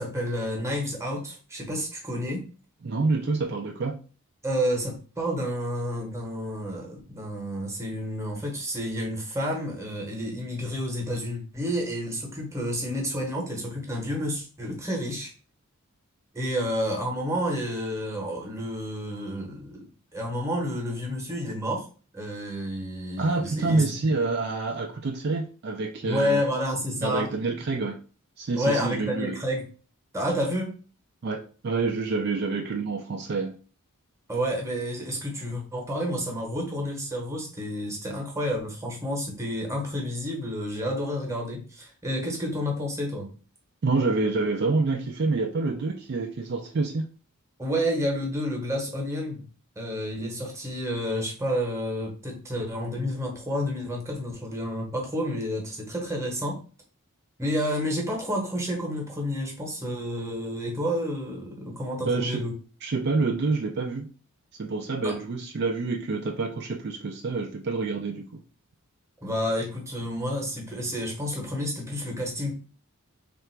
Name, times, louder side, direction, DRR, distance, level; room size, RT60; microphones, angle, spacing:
voice 1, 0.0-2.4 4.4-15.3 16.3-21.9 22.1-24.0 26.0-27.3 28.5-29.6 30.1-30.8 34.3-43.3 47.6-49.4 49.8-56.6 57.4-62.5 65.0-65.2 69.2-72.5, equal, 15° right, 1 dB, 1.0 m, -30 dB
voice 2, 2.8-4.0 23.2-26.4 27.0-28.0 28.4-29.4 31.2-33.6 43.8-47.1 62.0-62.4 62.8-64.1 64.6-68.3, right 3 dB, 50° right, 3 dB, 0.4 m, -27 dB
3.2 x 2.5 x 4.4 m, 0.38 s
head